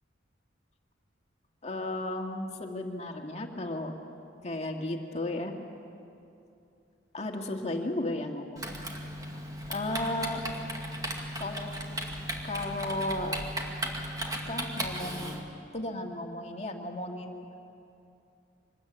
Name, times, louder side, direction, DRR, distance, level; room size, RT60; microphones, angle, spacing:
voice 1, 1.6-3.9 4.4-5.5 7.1-8.8 9.7-10.4 11.4-11.8 12.4-13.4 14.5-15.4 15.7-17.4, left 1 dB, 35° left, 2 dB, 2.1 m, -34 dB
Typing, 8.6-15.4, right 1 dB, 20° right, 2.2 m, -36 dB
24.5 x 20.5 x 8.9 m, 2.6 s
head